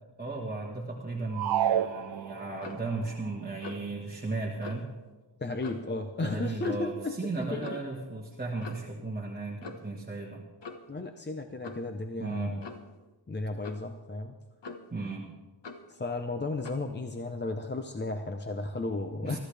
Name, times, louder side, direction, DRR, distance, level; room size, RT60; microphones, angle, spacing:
voice 1, 0.2-4.9 6.2-10.4 12.2-12.6 14.9-15.3 19.2-19.4, right 3 dB, 20° right, -3 dB, 1.5 m, -35 dB
sound 1, 1.3-2.8, right 10 dB, 55° right, 0.5 m, -29 dB
Clock, 2.6-2.9 3.6-3.9 4.6-4.8 5.6-5.9 6.6-6.9 7.6-7.9 8.6-8.9 9.6-10.0 10.6-10.9 11.6-11.9 12.6-12.9 13.6-13.9 14.6-15.0 15.6-15.9 16.6-16.9, left 4 dB, 65° left, 1.4 m, -44 dB
voice 2, 5.4-7.8 10.9-12.7 13.3-14.3 15.9-19.4, left 2 dB, 25° left, 5 dB, 0.7 m, -34 dB
23.5 x 13.5 x 3.4 m, 1.2 s
wide cardioid pair, 155°, 46 cm